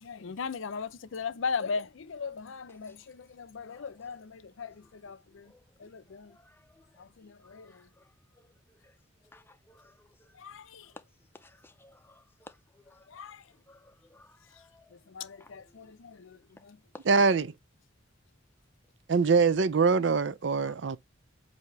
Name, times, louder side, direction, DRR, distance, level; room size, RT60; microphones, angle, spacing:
voice 1, 0.0-5.5 5.8-6.3 7.0-7.8 10.4-10.9 13.1-13.4 14.9-16.8, left 5 dB, 75° left, 0.5 m, -38 dB
voice 2, 6.3-6.7 7.2-8.1 8.4-8.5 8.8-8.9 9.2-10.3 10.9-11.0 11.3-13.1 13.7-14.9 15.4-15.5 16.9-17.0 20.6-20.7, left 2 dB, 10° left, 0.5 m, -55 dB
voice 3, 17.1-17.5 19.1-21.0, right 4 dB, 60° right, 0.5 m, -23 dB
8.0 x 2.8 x 4.6 m
head